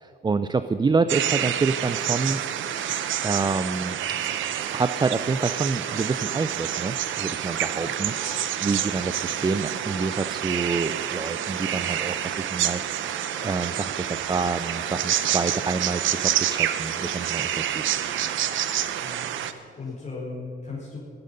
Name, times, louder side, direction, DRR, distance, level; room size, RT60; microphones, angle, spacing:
voice 1, 0.0-2.4 3.2-4.0 4.7-13.0 13.4-17.8, right 4 dB, 20° right, 11 dB, 0.5 m, -27 dB
sound 1, 1.1-19.5, right 11 dB, 75° right, 0.9 m, -28 dB
sound 2, 2.4-19.9, left 2 dB, 20° left, 3.5 m, -48 dB
voice 2, 19.0-21.0, left 3 dB, 35° left, -7 dB, 4.6 m, -38 dB
16.0 x 14.0 x 5.5 m, 2.7 s
cardioid pair, 90°, 20 cm